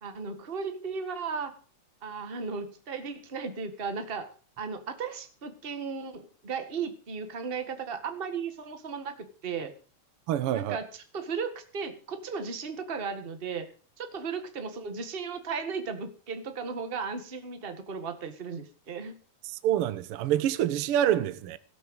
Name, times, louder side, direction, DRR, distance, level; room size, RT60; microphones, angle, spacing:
voice 1, 0.0-1.5 2.0-4.3 4.6-9.7 10.5-13.7 14.0-19.1, right 5 dB, 25° right, 1.5 m, -35 dB
voice 2, 10.3-10.8 19.6-21.6, right 11 dB, 65° right, 1.5 m, -26 dB
17.5 x 6.7 x 8.0 m
omnidirectional pair, 3.3 m